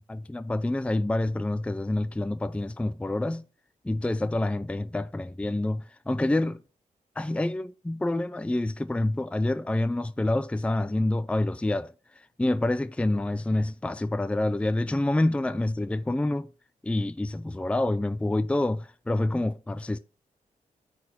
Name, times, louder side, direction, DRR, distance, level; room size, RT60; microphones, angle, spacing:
voice 1, 0.1-3.4 3.8-6.6 7.2-16.5 16.8-20.0, left 1 dB, 10° left, 0.5 m, -27 dB
8.9 x 4.1 x 4.4 m
cardioid pair, 75°, 14 cm